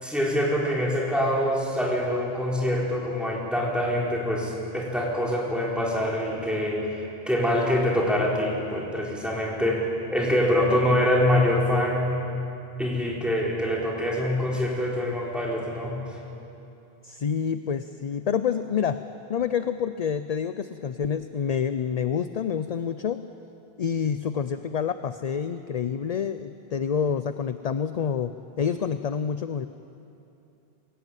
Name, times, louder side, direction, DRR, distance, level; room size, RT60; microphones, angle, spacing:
voice 1, 0.0-12.2 12.8-16.0, left 1 dB, ahead, -4 dB, 4.1 m, -25 dB
voice 2, 17.0-19.0 19.3-23.2 23.8-29.7, left 7 dB, 45° left, 11 dB, 0.6 m, -28 dB
22.5 x 17.0 x 9.2 m, 2.8 s
omnidirectional pair, 1.1 m